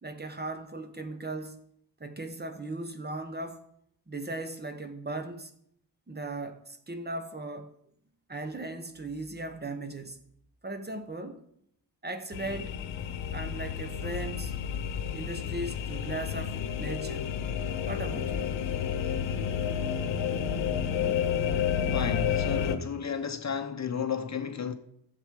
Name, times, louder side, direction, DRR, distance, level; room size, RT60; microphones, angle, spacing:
voice 1, 0.0-1.6 2.0-3.6 4.1-5.5 6.1-7.7 8.3-10.2 10.6-11.4 12.0-12.8 13.3-14.5 15.1-17.3 17.8-18.5, right 2 dB, 25° right, 1.0 m, -37 dB
sound 1, 12.3-22.8, left 8 dB, 90° left, 0.8 m, -31 dB
voice 2, 21.9-24.7, left 7 dB, 40° left, 0.8 m, -32 dB
11.5 x 7.5 x 5.0 m
cardioid pair, 95°, 43 cm